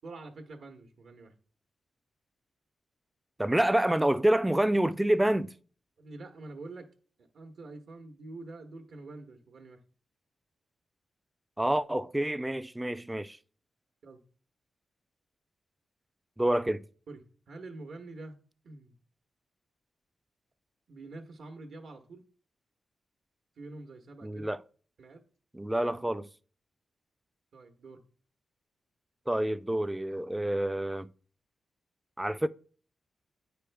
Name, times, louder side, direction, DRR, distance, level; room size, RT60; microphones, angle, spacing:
voice 1, 0.0-1.3 6.0-6.9 7.3-9.8 14.0-14.2 17.1-17.2 17.5-18.4 18.6-18.9 20.9-22.2 23.6-24.5 25.0-25.2 27.5-28.0, right 2 dB, 70° right, 1.0 m, -46 dB
voice 2, 3.4-5.6 11.6-13.4 16.4-16.8 24.2-24.6 25.5-26.3 29.3-31.1 32.2-32.5, right 1 dB, 10° right, 0.3 m, -27 dB
9.1 x 5.0 x 3.3 m
wide cardioid pair, 125°, 0 cm